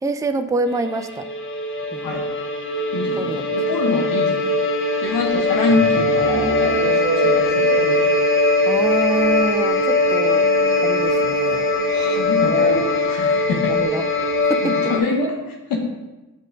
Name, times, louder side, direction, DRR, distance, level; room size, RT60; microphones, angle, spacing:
voice 1, 0.0-1.3 1.9-2.2 3.2-3.6 8.7-10.5 10.8-11.7 13.5-14.1 14.5-14.9, right 3 dB, 10° right, 8 dB, 0.4 m, -26 dB
sound 1, 0.7-15.0, left 2 dB, 35° left, 0.8 m, -20 dB
voice 2, 2.9-4.6 5.0-7.8 11.9-13.7 14.6-15.8, left 4 dB, 80° left, 1 dB, 0.9 m, -25 dB
sound 2, 5.1-8.2 8.4-8.5 8.9-9.0 9.2-9.3 10.6-10.7 12.4-13.2, right 2 dB, 70° right, 1.5 m, -27 dB
6.3 x 3.8 x 5.1 m, 1.1 s
supercardioid pair, 50°, 33 cm